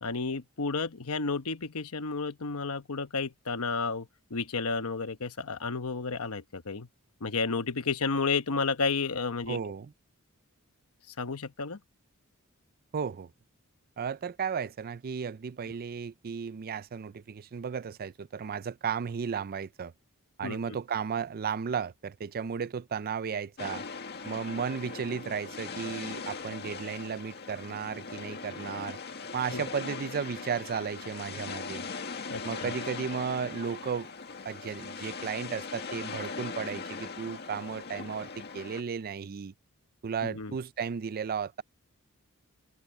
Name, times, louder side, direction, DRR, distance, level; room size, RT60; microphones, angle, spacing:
voice 1, 0.0-6.9 7.2-9.6 11.2-11.8 20.4-20.6 29.5-29.6 32.3-32.7 40.2-40.6, left 4 dB, 70° left, 1.1 m, -32 dB
voice 2, 9.5-9.9 12.9-13.3 14.0-19.9 20.4-23.8 24.2-29.0 29.3-31.9 32.4-34.1 34.4-39.5 40.0-41.6, right 6 dB, 45° right, 0.4 m, -34 dB
sound 1, 23.6-38.8, left 4 dB, 50° left, 1.9 m, -40 dB
head